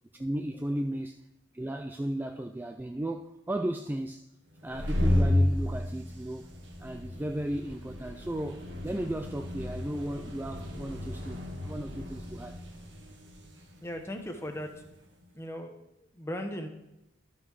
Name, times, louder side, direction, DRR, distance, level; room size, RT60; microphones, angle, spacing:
voice 1, 0.2-1.2 1.5-4.2 4.6-6.5 6.8-12.6, right 1 dB, 10° right, 0.3 m, -35 dB
sound 1, 4.5-15.0, left 1 dB, 75° right, 1.6 m, -33 dB
voice 2, 13.8-14.8 15.3-15.7 16.0-16.7, equal, 15° left, 1.0 m, -38 dB
12.0 x 5.6 x 4.7 m
head